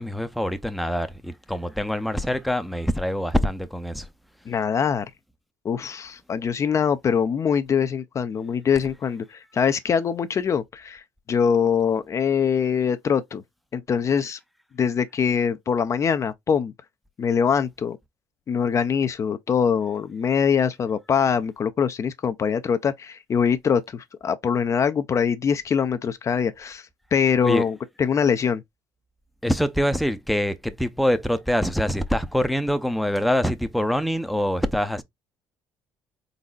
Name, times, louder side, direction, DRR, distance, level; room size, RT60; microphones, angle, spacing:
voice 1, 0.0-4.1 27.4-27.6 29.4-35.0, equal, ahead, 0.6 m, -24 dB
voice 2, 4.5-5.1 5.6-11.0 11.3-13.4 13.7-14.4 14.8-16.7 17.2-18.0 18.5-26.9 27.1-28.6, left 7 dB, 40° left, 0.5 m, -23 dB
4.1 x 4.0 x 2.3 m
supercardioid pair, 85°, 8 cm